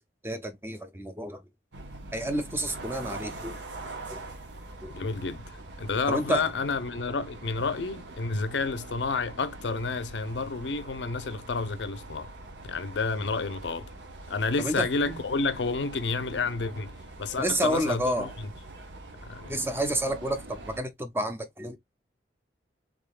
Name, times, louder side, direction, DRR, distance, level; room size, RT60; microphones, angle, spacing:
voice 1, 0.2-1.4 2.1-3.6 4.1-4.2 4.8-5.0 6.1-6.4 14.6-15.2 17.4-18.3 19.5-21.8, right 1 dB, 15° right, 0.5 m, -30 dB
sound 1, 1.7-20.8, right 2 dB, 85° right, 1.1 m, -43 dB
voice 2, 4.9-12.3 12.6-13.9 14.3-16.9 17.2-18.5 19.2-19.6, left 4 dB, 85° left, 0.6 m, -30 dB
3.6 x 3.6 x 2.3 m
head